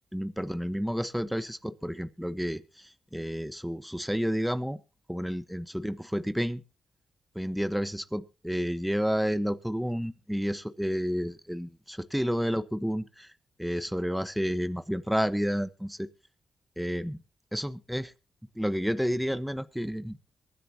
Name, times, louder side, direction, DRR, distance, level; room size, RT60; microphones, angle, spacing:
voice 1, 0.1-4.8 5.1-6.6 7.3-13.3 13.6-16.1 16.8-17.2 17.5-18.1 18.5-20.2, equal, ahead, 12 dB, 1.2 m, -30 dB
23.5 x 10.0 x 2.9 m, 0.30 s
cardioid pair, 55°, 0 cm